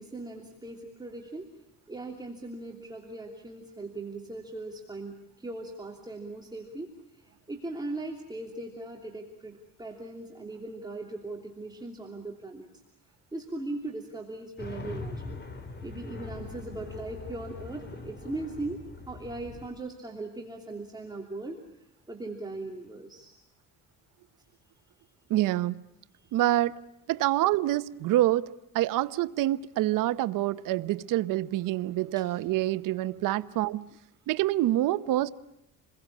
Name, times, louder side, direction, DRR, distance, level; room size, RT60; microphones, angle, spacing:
voice 1, 0.0-1.5 1.9-6.9 7.5-12.7 13.3-15.4 15.8-18.8 19.1-21.6 22.1-23.3 32.2-32.3, right 2 dB, 15° right, 3.0 m, -39 dB
sound 1, 14.6-19.7, left 3 dB, 35° left, 3.6 m, -41 dB
voice 2, 25.3-25.8 26.3-26.8 27.1-33.9 34.3-35.3, right 15 dB, 85° right, 0.9 m, -26 dB
28.5 x 21.5 x 8.4 m
cardioid pair, 135°, 32 cm